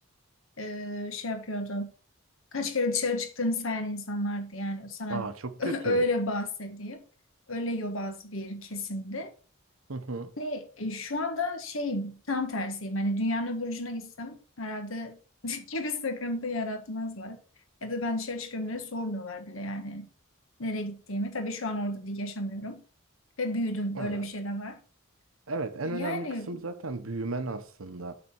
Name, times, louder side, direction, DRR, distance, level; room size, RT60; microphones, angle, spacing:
voice 1, 0.6-1.9 2.5-5.3 5.6-7.0 7.5-9.3 10.4-15.2 15.4-17.4 17.8-20.1 20.6-22.8 23.4-24.8 25.8-26.5, left 1 dB, 75° left, 1.5 m, -32 dB
voice 2, 5.1-6.0 9.9-10.3 23.9-24.3 25.5-28.2, right 3 dB, 85° right, 1.0 m, -34 dB
8.2 x 4.2 x 6.0 m
head